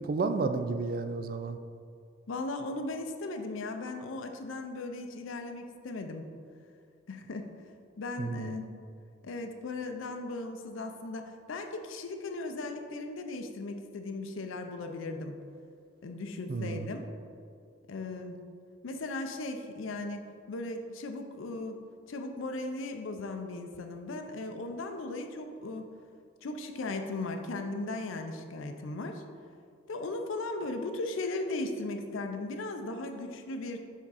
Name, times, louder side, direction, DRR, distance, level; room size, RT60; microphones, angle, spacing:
voice 1, 0.0-1.6 8.2-8.5 16.5-16.8, right 4 dB, 45° right, 9 dB, 0.3 m, -31 dB
voice 2, 2.3-6.2 7.1-7.5 8.0-8.6 9.2-15.4 16.0-17.0 17.9-18.4 18.8-21.8 22.1-25.9 26.4-29.2 29.9-33.8, left 2 dB, 90° left, 5 dB, 0.5 m, -37 dB
7.2 x 3.6 x 4.1 m, 2.3 s
head